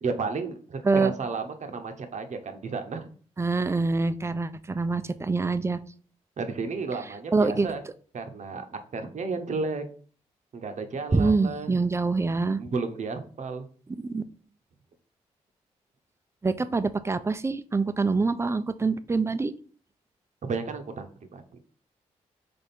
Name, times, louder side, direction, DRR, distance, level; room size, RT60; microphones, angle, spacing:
voice 1, 0.0-3.1 6.4-7.8 8.1-9.8 10.5-11.7 12.5-13.7 20.4-21.4, right 4 dB, 55° right, 7 dB, 0.8 m, -33 dB
voice 2, 3.4-5.8 7.3-7.7 11.1-12.6 14.0-14.2 16.4-19.5, right 3 dB, 20° right, 13 dB, 0.4 m, -25 dB
3.6 x 3.4 x 4.2 m, 0.43 s
supercardioid pair, 45°, 15 cm